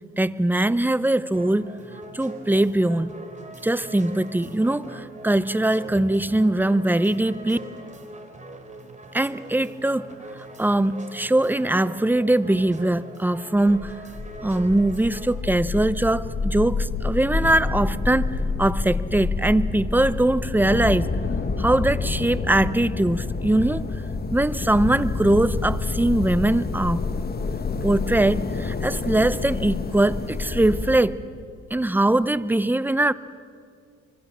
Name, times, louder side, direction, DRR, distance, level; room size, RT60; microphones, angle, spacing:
voice 1, 0.2-1.7 2.1-3.1 3.6-7.6 9.1-10.1 10.6-14.0 14.4-18.3 18.6-21.1 21.6-23.9 24.3-27.0 27.8-31.2 31.7-33.1, right 1 dB, 5° right, 16 dB, 0.7 m, -21 dB
sound 1, 1.3-15.3, right 1 dB, 25° right, 3.3 m, -41 dB
sound 2, 13.7-31.0, left 4 dB, 30° left, 1.5 m, -28 dB
24.5 x 24.5 x 7.4 m, 2.2 s
cardioid pair, 90°, 30 cm